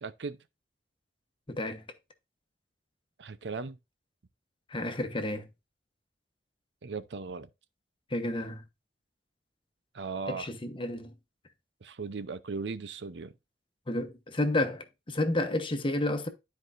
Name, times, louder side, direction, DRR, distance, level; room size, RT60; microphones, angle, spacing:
voice 1, 0.0-0.4 3.2-3.8 6.8-7.5 9.9-10.5 11.8-13.3, right 4 dB, 80° right, 0.6 m, -37 dB
voice 2, 1.5-1.8 4.7-5.5 8.1-8.6 10.3-11.1 13.9-16.3, left 1 dB, 30° left, 1.0 m, -31 dB
12.5 x 4.7 x 2.6 m
head